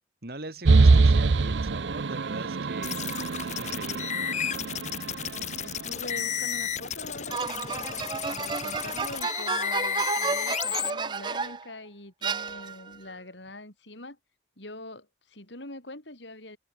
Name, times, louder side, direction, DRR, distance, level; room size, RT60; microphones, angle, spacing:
voice 1, 0.2-3.0 3.6-4.1, right 2 dB, 55° right, 2.2 m, -41 dB
sound 1, 0.7-6.2, right 3 dB, 80° right, 0.6 m, -24 dB
sound 2, 2.8-10.9, left 9 dB, 40° left, 3.7 m, -32 dB
voice 2, 5.6-14.2 14.6-16.6, left 2 dB, 80° left, 7.9 m, -43 dB
sound 3, 7.3-11.7 12.2-13.0, right 5 dB, 25° right, 0.3 m, -32 dB
head